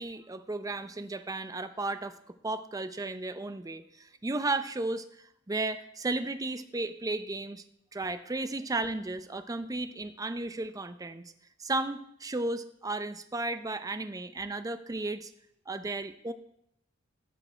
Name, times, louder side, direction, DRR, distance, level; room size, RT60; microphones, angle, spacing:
voice 1, 0.0-5.0 5.5-7.6 7.9-11.2 11.6-15.3 15.7-16.3, right 2 dB, 20° right, 10 dB, 0.5 m, -34 dB
14.0 x 6.5 x 4.4 m, 0.76 s
head